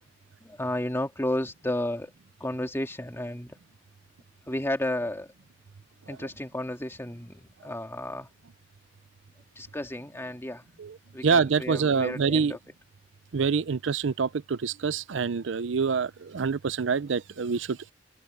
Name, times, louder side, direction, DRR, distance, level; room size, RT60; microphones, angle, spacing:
voice 1, 0.4-2.1 2.4-3.6 4.5-5.3 6.1-8.3 9.6-10.6 11.1-12.6, left 1 dB, 15° left, 2.2 m, -32 dB
voice 2, 11.2-12.6 13.3-17.9, right 5 dB, 75° right, 0.5 m, -26 dB
head